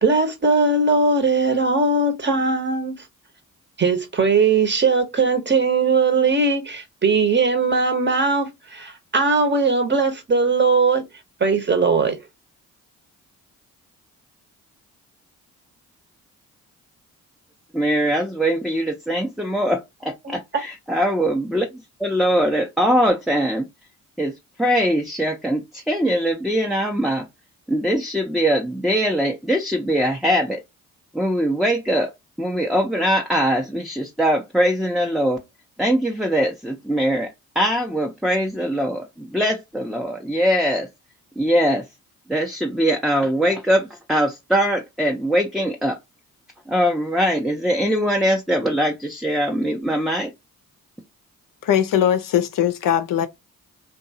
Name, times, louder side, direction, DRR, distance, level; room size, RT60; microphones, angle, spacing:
voice 1, 0.0-3.1 3.8-11.0 11.4-12.2 20.2-20.4, right 4 dB, 25° right, 0.9 m, -19 dB
voice 2, 17.7-23.7 24.2-27.3 27.7-30.6 31.1-35.4 35.8-40.9 41.4-41.9 42.3-46.0 46.7-50.3, equal, ahead, 0.5 m, -22 dB
voice 3, 51.6-53.3, left 10 dB, 50° left, 0.5 m, -20 dB
2.6 x 2.3 x 2.6 m
hypercardioid pair, 40°, 42 cm